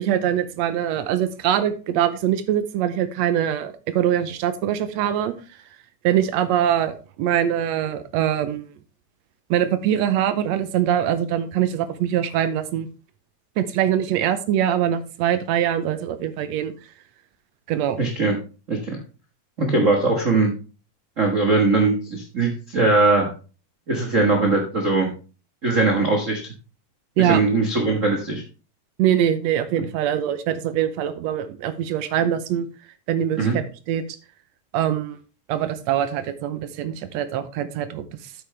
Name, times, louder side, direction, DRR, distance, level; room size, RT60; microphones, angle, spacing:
voice 1, 0.0-5.3 6.0-8.7 9.5-12.9 13.6-16.7 17.7-18.0 27.2-27.4 29.0-32.7 33.1-34.0 34.7-35.2 35.5-38.0, right 10 dB, 75° right, 11 dB, 1.7 m, -23 dB
voice 2, 18.0-18.4 18.7-19.0 19.6-20.5 21.2-23.3 23.9-25.1 25.6-26.4 27.2-28.4 33.4-33.6, right 3 dB, 90° right, 1 dB, 0.6 m, -20 dB
9.3 x 8.5 x 3.3 m, 0.35 s
omnidirectional pair, 3.8 m